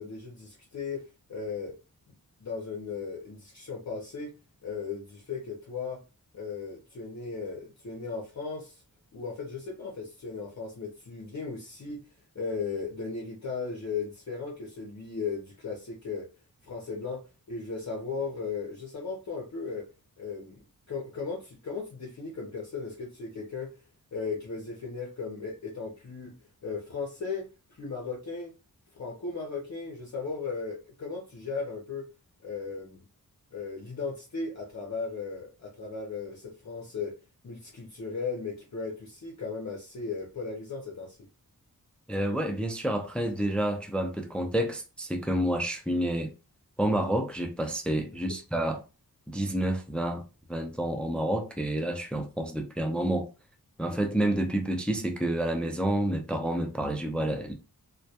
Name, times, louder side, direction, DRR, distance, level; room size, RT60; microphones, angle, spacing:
voice 1, 0.0-1.7 2.4-4.3 4.6-6.0 6.3-8.8 9.1-12.0 12.3-16.3 16.6-17.2 17.5-19.8 20.2-20.6 20.9-23.8 24.1-26.4 26.6-28.5 28.9-32.1 32.4-33.0 33.5-37.1 37.4-41.2 48.3-48.4, left 4 dB, 50° left, 0.6 m, -36 dB
voice 2, 42.1-46.3 46.8-48.8 49.3-50.2 50.5-53.3 53.8-57.5, right 1 dB, 5° left, 0.3 m, -29 dB
2.1 x 2.1 x 2.7 m
wide cardioid pair, 85°, 37 cm